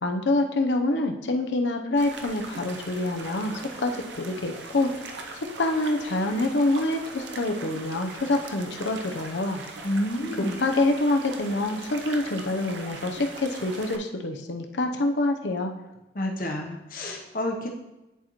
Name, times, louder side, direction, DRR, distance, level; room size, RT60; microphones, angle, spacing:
voice 1, 0.0-4.9 5.6-9.6 10.6-15.7, left 2 dB, 85° left, 5 dB, 0.7 m, -26 dB
sound 1, 2.0-14.0, right 3 dB, 85° right, 0.6 m, -40 dB
voice 2, 9.8-10.6 16.1-17.7, left 1 dB, 50° left, 1 dB, 0.8 m, -29 dB
10.0 x 4.3 x 3.0 m, 0.99 s
head